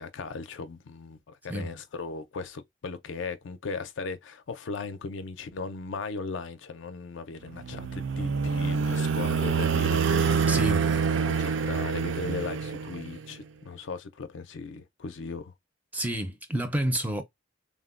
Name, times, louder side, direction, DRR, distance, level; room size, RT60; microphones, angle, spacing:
voice 1, 0.0-10.5 11.2-15.5, left 4 dB, 70° left, 0.5 m, -37 dB
sound 1, 7.5-13.3, right 5 dB, 75° right, 0.4 m, -26 dB
voice 2, 10.5-10.9 15.9-17.2, right 1 dB, 10° right, 0.4 m, -29 dB
3.5 x 2.1 x 2.4 m
head